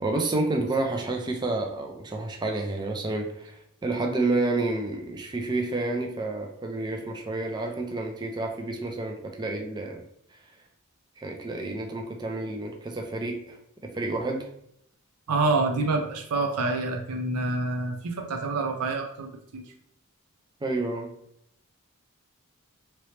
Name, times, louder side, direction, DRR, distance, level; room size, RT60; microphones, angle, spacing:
voice 1, 0.0-10.0 11.2-13.6 13.8-14.5 20.6-21.1, right 2 dB, 20° right, 2 dB, 0.4 m, -29 dB
voice 2, 15.3-19.6, right 3 dB, 90° right, 4 dB, 0.5 m, -27 dB
2.9 x 2.9 x 3.2 m, 0.75 s
head